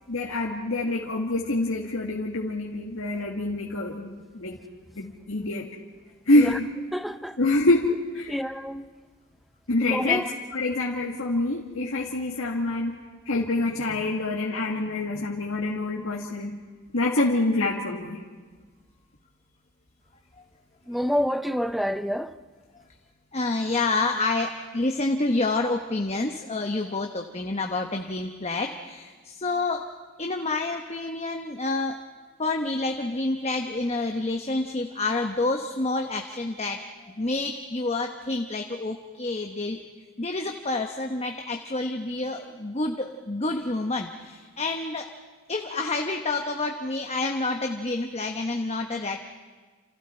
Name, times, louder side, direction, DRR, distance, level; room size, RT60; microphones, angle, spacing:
voice 1, 0.1-4.6 5.0-5.7 6.3-6.7 7.4-8.4 9.7-10.2 10.5-13.0 13.3-16.6 16.9-18.2, left 2 dB, 70° left, 1.9 m, -26 dB
voice 2, 6.9-7.4 8.3-8.9 9.8-10.3 20.9-22.3, equal, ahead, 0.7 m, -28 dB
voice 3, 23.3-29.9 30.2-32.0 32.4-39.8 40.2-45.1 45.5-49.2, left 2 dB, 30° left, 1.0 m, -28 dB
29.0 x 28.5 x 4.4 m
head